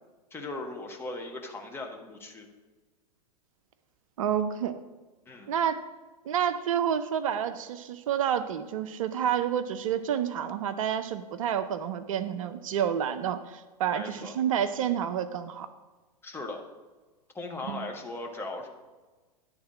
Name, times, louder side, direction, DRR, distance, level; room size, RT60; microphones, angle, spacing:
voice 1, 0.3-2.5 5.3-5.5 13.9-14.4 16.2-16.6 17.3-18.7, left 2 dB, 10° left, 2 dB, 1.1 m, -38 dB
voice 2, 4.2-4.8 5.5-5.8 6.3-15.7 17.7-17.8, right 9 dB, 55° right, 11 dB, 0.5 m, -29 dB
10.5 x 3.7 x 6.0 m, 1.3 s
figure-of-eight pair, 95°, 21 cm